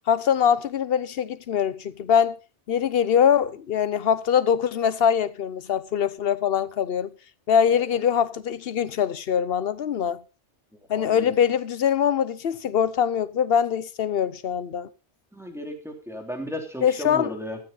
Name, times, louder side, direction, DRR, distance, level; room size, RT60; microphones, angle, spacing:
voice 1, 0.1-2.4 2.7-7.1 7.5-10.2 10.9-14.9 16.8-17.3, left 8 dB, 60° left, 1.0 m, -23 dB
voice 2, 10.9-11.3 15.3-17.6, equal, ahead, 3.0 m, -35 dB
14.5 x 12.5 x 3.9 m
omnidirectional pair, 1.2 m